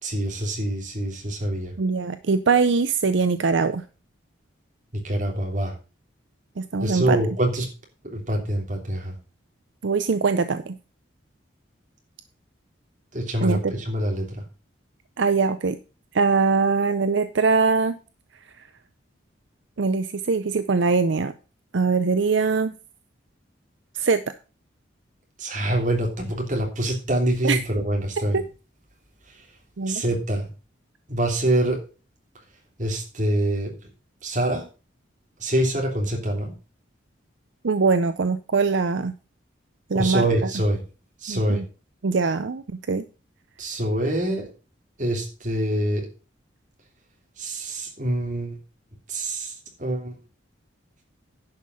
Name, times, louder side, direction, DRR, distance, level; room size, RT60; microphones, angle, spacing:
voice 1, 0.0-1.7 4.9-5.7 6.8-7.7 8.0-9.1 13.1-14.4 25.4-28.4 29.3-29.4 29.8-30.5 31.1-31.8 32.8-33.7 34.2-34.6 35.4-36.5 39.9-40.8 41.2-41.6 43.6-44.5 45.0-46.1 47.4-48.6 49.1-50.2, right 1 dB, 40° right, 1 dB, 3.1 m, -25 dB
voice 2, 1.8-3.8 6.6-7.2 9.8-10.8 13.4-13.7 15.2-15.8 16.1-18.0 19.8-21.3 21.7-22.7 23.9-24.2 27.4-27.6 28.3-28.4 29.8-30.0 37.6-39.1 39.9-40.2 41.3-41.6 42.0-43.0, right 4 dB, 70° right, 12 dB, 0.6 m, -22 dB
11.0 x 5.6 x 6.2 m, 0.34 s
head